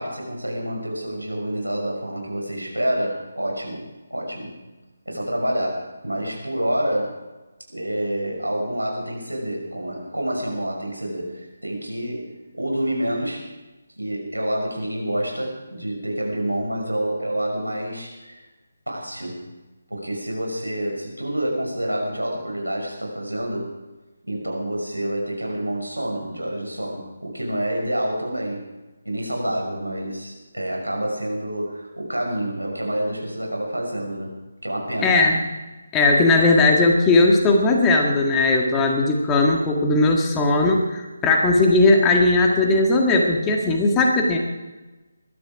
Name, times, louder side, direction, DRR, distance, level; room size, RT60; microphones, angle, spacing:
voice 1, 0.0-4.6 5.1-7.2 7.7-13.5 14.0-18.4 18.9-19.5 19.9-23.8 24.3-28.7 29.0-35.2, right 1 dB, 85° right, 0 dB, 6.0 m, -28 dB
voice 2, 35.0-35.4 35.9-44.4, left 2 dB, 15° left, 1 dB, 1.7 m, -18 dB
22.0 x 12.0 x 4.9 m, 1.2 s
figure-of-eight pair, 150°, 0 cm